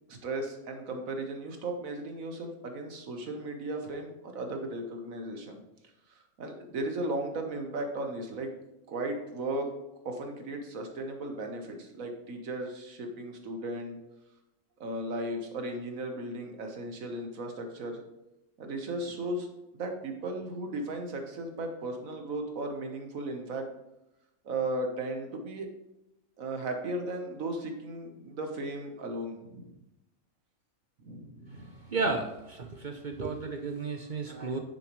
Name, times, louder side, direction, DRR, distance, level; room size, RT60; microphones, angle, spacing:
voice 1, 0.1-5.6 6.1-8.5 8.9-9.7 10.0-14.0 14.8-18.0 18.6-19.5 19.7-23.7 24.4-25.7 26.4-29.7 31.0-31.7, right 2 dB, 65° right, 4 dB, 1.6 m, -36 dB
voice 2, 31.9-34.6, right 3 dB, 45° right, 5 dB, 0.6 m, -33 dB
9.8 x 7.1 x 3.1 m, 0.92 s
omnidirectional pair, 1.5 m